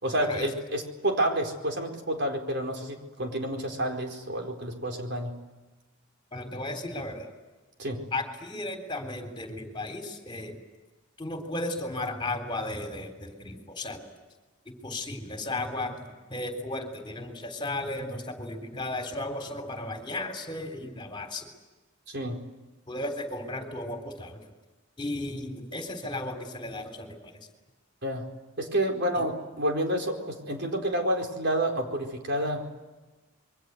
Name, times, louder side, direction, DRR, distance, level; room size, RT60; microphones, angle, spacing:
voice 1, 0.0-5.3 7.8-8.0 22.1-22.4 28.0-28.3 28.6-32.8, right 1 dB, 60° right, 3 dB, 4.5 m, -29 dB
voice 2, 6.3-7.3 8.1-10.6 11.2-14.1 14.8-21.5 22.9-24.5 25.0-27.5 29.2-29.3, left 2 dB, 25° left, 5 dB, 3.6 m, -35 dB
27.5 x 23.5 x 8.1 m, 1.2 s
head